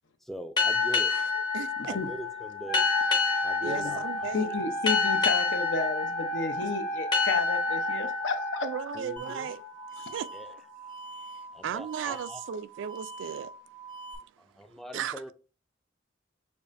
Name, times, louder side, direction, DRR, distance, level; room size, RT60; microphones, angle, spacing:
voice 1, 0.2-2.9 3.4-4.3 8.9-9.5 10.3-10.5 11.5-12.4 14.4-15.3, equal, ahead, 0.3 m, -42 dB
sound 1, 0.6-9.8, left 5 dB, 25° left, 0.7 m, -29 dB
voice 2, 1.5-2.0 3.6-4.6 8.6-9.7 10.0-10.7 11.6-13.5 14.9-15.3, right 8 dB, 75° right, 0.3 m, -36 dB
Wind instrument woodwind instrument, 2.6-8.8, right 3 dB, 55° left, 1.0 m, -35 dB
voice 3, 3.6-3.9 4.3-8.7 10.0-10.1, left 4 dB, 75° left, 0.7 m, -32 dB
sound 2, 9.2-14.2, right 3 dB, 40° left, 1.7 m, -44 dB
6.9 x 2.5 x 2.5 m
head